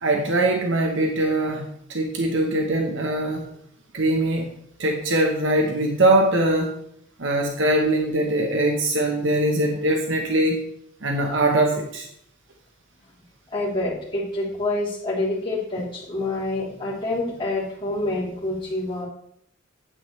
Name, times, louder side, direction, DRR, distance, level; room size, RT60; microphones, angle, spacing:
voice 1, 0.0-3.4 3.9-4.5 4.8-6.7 7.2-10.6 11.0-12.1, right 1 dB, 60° right, 2 dB, 1.0 m, -22 dB
voice 2, 13.5-19.0, left 2 dB, 25° left, -8 dB, 3.3 m, -27 dB
9.1 x 8.3 x 3.2 m, 0.69 s
head